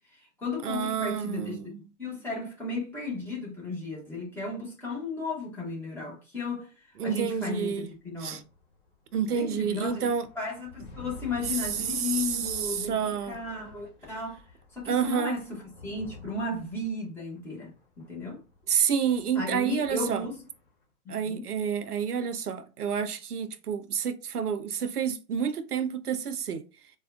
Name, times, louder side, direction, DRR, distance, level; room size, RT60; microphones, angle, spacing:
voice 1, 0.1-1.7 2.0-8.4 9.3-10.1 10.3-14.4 14.7-18.4 19.3-20.4 21.0-21.5, left 3 dB, 5° left, 0.8 m, -35 dB
voice 2, 0.6-1.8 7.0-7.9 8.2-8.4 9.1-10.2 11.9-13.4 14.9-15.4 18.7-20.3 21.1-26.6, right 7 dB, 85° right, 0.6 m, -29 dB
sound 1, 7.3-20.8, left 4 dB, 35° left, 1.8 m, -51 dB
4.2 x 2.2 x 2.4 m
figure-of-eight pair, 130°, 45 cm